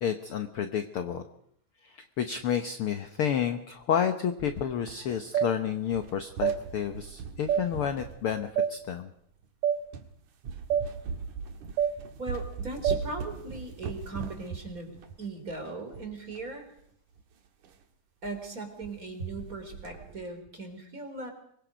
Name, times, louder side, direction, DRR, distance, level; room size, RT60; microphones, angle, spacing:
voice 1, 0.0-1.2 1.8-9.1, left 8 dB, 65° left, 8 dB, 1.4 m, -30 dB
sound 1, 4.4-5.6 5.9-8.9 9.4-9.5 9.9-10.1 10.4-16.5 16.8-16.9 17.1-17.2 17.6-17.8 18.2-18.4 18.6-19.0 19.3-20.2, right 5 dB, 70° right, 3.0 m, -40 dB
sound 2, 5.3-5.5 6.4-6.6 7.5-7.6 8.6-8.7 9.6-9.8 10.7-10.9 11.8-11.9 12.8-13.0, right 9 dB, 90° right, 2.6 m, -25 dB
voice 2, 12.2-16.6 18.2-21.3, right 3 dB, 25° right, 5 dB, 3.7 m, -39 dB
25.0 x 22.0 x 5.1 m, 0.68 s
omnidirectional pair, 3.7 m